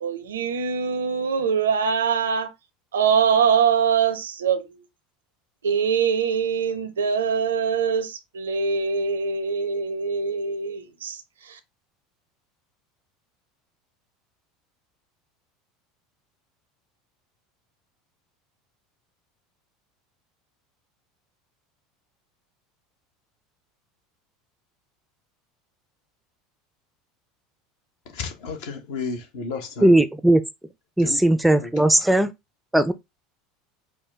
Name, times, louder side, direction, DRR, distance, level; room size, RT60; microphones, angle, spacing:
voice 1, 0.0-2.5 2.9-4.7 5.6-11.2, right 6 dB, 75° right, 0.6 m, -23 dB
voice 2, 28.1-29.9 31.0-31.2 31.6-31.8, left 4 dB, 60° left, 1.2 m, -33 dB
voice 3, 29.8-30.4 31.0-32.3 32.7-32.9, right 1 dB, 5° right, 0.5 m, -17 dB
4.8 x 2.2 x 3.5 m
figure-of-eight pair, 75°, 0 cm